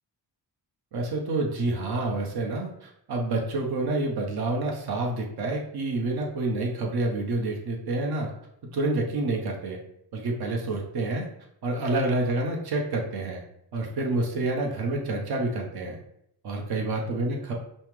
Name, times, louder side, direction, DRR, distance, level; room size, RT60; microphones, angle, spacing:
voice 1, 0.9-8.3 8.7-9.8 10.1-11.3 11.6-13.4 13.7-16.0 16.4-17.5, right 2 dB, 65° right, 0 dB, 0.9 m, -28 dB
5.4 x 2.1 x 3.1 m, 0.75 s
wide cardioid pair, 125°, 40 cm